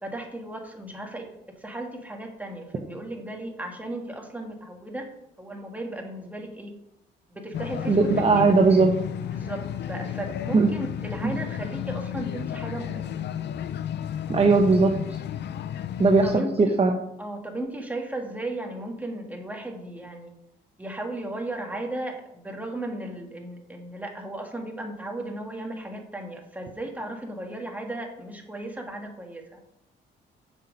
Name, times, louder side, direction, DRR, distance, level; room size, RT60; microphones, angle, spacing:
voice 1, 0.0-5.1 5.4-6.8 7.3-8.5 9.3-13.2 16.2-16.8 17.2-20.3 20.8-29.6, right 1 dB, 10° right, 2 dB, 1.7 m, -35 dB
sound 1, 7.5-16.4, left 10 dB, 60° left, 0.5 m, -32 dB
voice 2, 7.9-9.0 10.5-10.7 11.2-11.3 14.3-14.9 16.0-16.4 16.8-17.0, right 4 dB, 30° right, 2 dB, 0.9 m, -18 dB
7.1 x 6.1 x 5.3 m, 0.80 s
cardioid pair, 90°, 20 cm